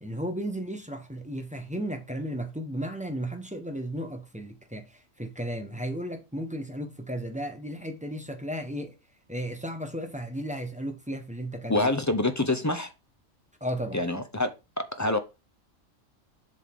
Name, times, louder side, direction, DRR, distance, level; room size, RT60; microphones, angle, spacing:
voice 1, 0.0-8.9 9.3-11.9 13.6-14.0, equal, 5° right, 1.1 m, -34 dB
voice 2, 11.7-12.9 13.9-14.5 14.8-15.2, left 2 dB, 15° left, 0.7 m, -26 dB
7.6 x 5.3 x 3.7 m
omnidirectional pair, 1.4 m